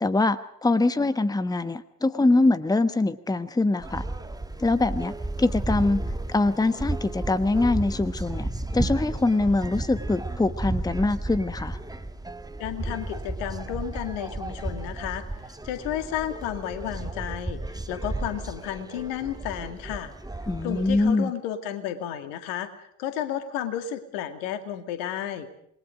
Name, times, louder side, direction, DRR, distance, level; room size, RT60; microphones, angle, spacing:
voice 1, 0.0-4.0 4.6-6.0 6.3-8.5 8.7-11.8 20.5-21.3, left 2 dB, 10° left, 14 dB, 1.1 m, -23 dB
sound 1, 3.8-21.1, right 2 dB, 10° right, 1.7 m, -33 dB
voice 2, 12.6-20.1 20.6-25.5, left 10 dB, 65° left, 9 dB, 2.2 m, -32 dB
27.5 x 21.5 x 5.2 m, 0.73 s
figure-of-eight pair, 45°, 39 cm